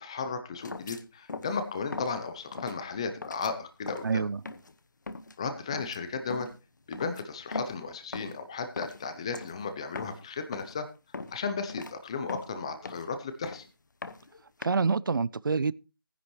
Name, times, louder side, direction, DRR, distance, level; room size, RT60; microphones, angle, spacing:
voice 1, 0.0-4.2 5.4-6.5 6.9-10.9 11.3-13.7, left 5 dB, 15° left, 0.6 m, -35 dB
sound 1, 0.6-1.0 1.3-1.6 1.9-2.2 2.5-2.8 3.2-3.5 3.9-4.1 4.5-4.7 5.1-5.3 5.7-6.0 6.3-6.6 6.9-7.9 8.1-8.4 8.8-9.1 9.3-9.6 9.9-10.2 10.5-10.8 11.1-11.4 11.7-11.9 12.3-13.1 13.4-13.7 14.0-14.6, left 3 dB, 55° left, 1.0 m, -40 dB
voice 2, 4.0-4.4 14.6-15.7, right 4 dB, 65° right, 0.5 m, -27 dB
15.0 x 10.0 x 3.1 m
figure-of-eight pair, 170°, 12 cm